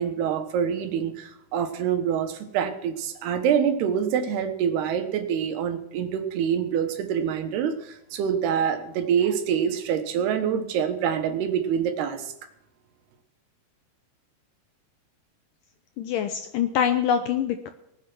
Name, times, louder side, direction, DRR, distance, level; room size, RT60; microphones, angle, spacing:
voice 1, 0.0-12.3, right 8 dB, 75° right, 7 dB, 3.3 m, -26 dB
voice 2, 16.0-17.7, left 8 dB, 80° left, 8 dB, 1.9 m, -24 dB
19.0 x 8.5 x 6.2 m, 0.80 s
omnidirectional pair, 4.8 m